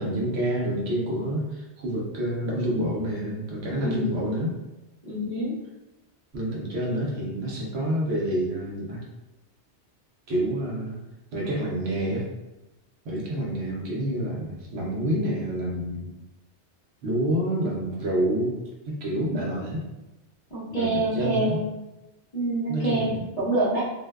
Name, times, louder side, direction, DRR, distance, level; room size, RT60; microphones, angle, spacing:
voice 1, 0.0-4.5 6.3-9.0 10.3-11.0 11.3-12.3 13.1-16.1 17.0-18.6 18.9-19.8 20.7-21.6 22.7-23.2, right 1 dB, 70° right, -3 dB, 0.9 m, -28 dB
voice 2, 3.8-4.2 5.0-5.5 20.5-21.6 22.3-23.8, right 2 dB, 40° left, -9 dB, 0.7 m, -26 dB
2.6 x 2.1 x 2.2 m, 1.0 s
omnidirectional pair, 1.2 m